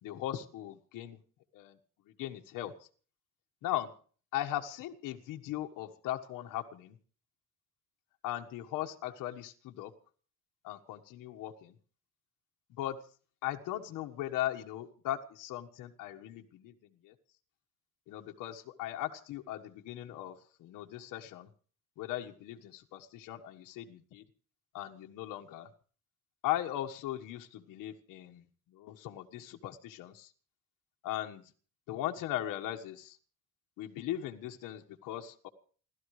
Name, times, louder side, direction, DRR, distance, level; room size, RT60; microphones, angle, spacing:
voice 1, 0.0-1.2 1.5-1.8 2.1-2.7 3.6-3.9 4.3-7.0 8.2-9.9 10.6-11.8 12.7-13.0 13.4-17.1 18.1-21.5 22.0-24.2 24.7-25.7 26.4-30.3 31.0-31.5 31.9-33.2 33.8-35.5, left 13 dB, 70° left, 4 dB, 1.5 m, -38 dB
29.5 x 13.0 x 3.2 m, 0.42 s
cardioid pair, 175°, 32 cm